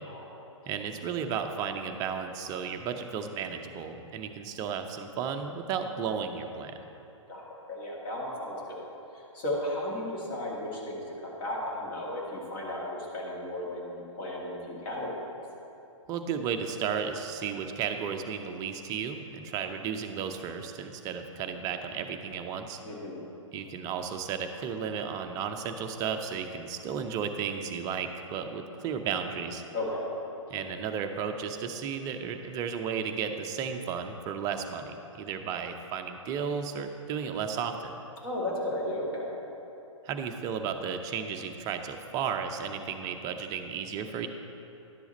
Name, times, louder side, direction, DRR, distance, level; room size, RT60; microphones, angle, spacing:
voice 1, 0.1-0.4 7.3-8.8 9.1-15.1 22.8-23.2 29.7-30.1 38.2-39.3, left 1 dB, 40° left, -4 dB, 2.1 m, -35 dB
voice 2, 0.7-6.7 16.1-22.8 23.5-29.6 30.5-37.9 40.0-44.3, right 7 dB, 20° right, 6 dB, 0.5 m, -34 dB
11.0 x 7.0 x 4.1 m, 2.9 s
figure-of-eight pair, 120°, 17 cm